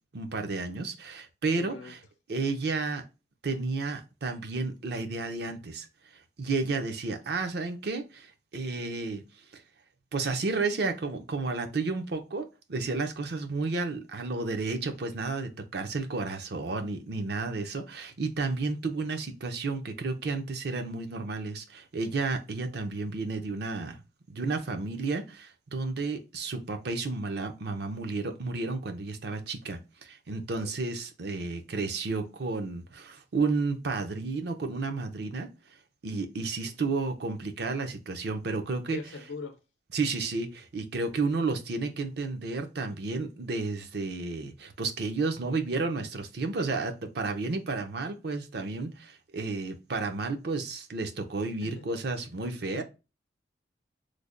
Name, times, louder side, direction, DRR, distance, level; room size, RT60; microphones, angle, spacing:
voice 1, 0.1-2.0 2.3-3.0 3.4-5.9 6.4-9.2 9.5-9.6 10.1-24.0 24.3-35.5 36.0-39.2 39.9-52.8, right 3 dB, 60° right, 0.5 m, -32 dB
voice 2, 1.5-1.9 30.6-30.7 38.9-39.6 51.6-51.9 52.7-52.8, left 4 dB, 80° left, 0.6 m, -41 dB
3.3 x 2.1 x 3.7 m
head